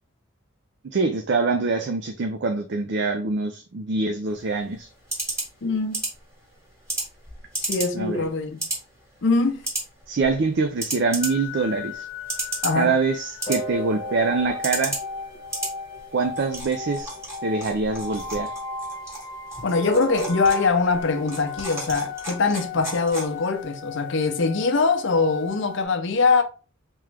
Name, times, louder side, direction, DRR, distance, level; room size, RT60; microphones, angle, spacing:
voice 1, 0.8-4.9 7.9-8.2 10.1-12.0 12.7-15.0 16.1-17.2 17.4-18.5, right 4 dB, 60° right, 0.5 m, -24 dB
sound 1, 4.3-23.6, right 1 dB, 15° right, 1.8 m, -35 dB
voice 2, 5.6-6.0 7.6-8.7 9.2-9.6 12.6-12.9 19.6-26.4, left 4 dB, 65° left, 0.6 m, -22 dB
sound 2, 11.2-25.9, left 2 dB, 25° left, 1.0 m, -35 dB
3.6 x 3.0 x 3.3 m
head